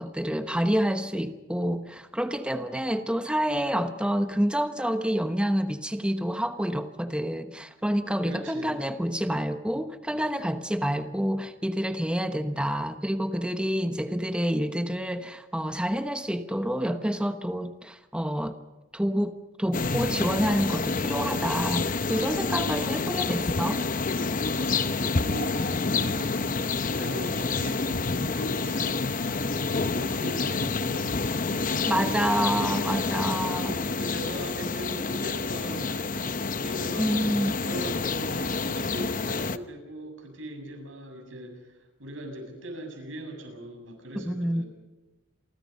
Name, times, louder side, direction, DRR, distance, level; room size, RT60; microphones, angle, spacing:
voice 1, 0.0-18.6 18.9-23.8 31.9-33.8 37.0-37.5 44.2-44.6, equal, 5° right, 8 dB, 1.0 m, -28 dB
voice 2, 8.3-8.8 14.0-14.4 22.6-23.2 24.5-29.5 29.9-33.0 33.6-37.1 37.6-44.6, right 1 dB, 85° right, 4 dB, 7.6 m, -40 dB
sound 1, 19.7-39.6, left 4 dB, 45° left, 0.9 m, -28 dB
29.0 x 23.5 x 5.5 m, 1.1 s
head